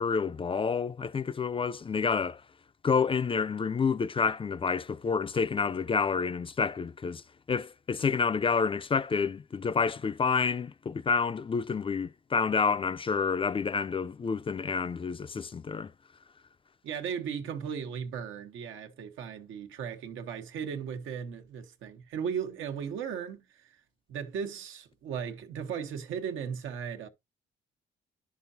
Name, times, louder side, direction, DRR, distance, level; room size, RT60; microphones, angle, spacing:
voice 1, 0.0-2.4 2.8-7.2 7.5-15.9, left 5 dB, 25° left, 0.4 m, -29 dB
voice 2, 16.8-23.8 24.1-27.1, right 7 dB, 85° right, 1.2 m, -36 dB
10.5 x 6.0 x 2.7 m
cardioid pair, 90°, 20 cm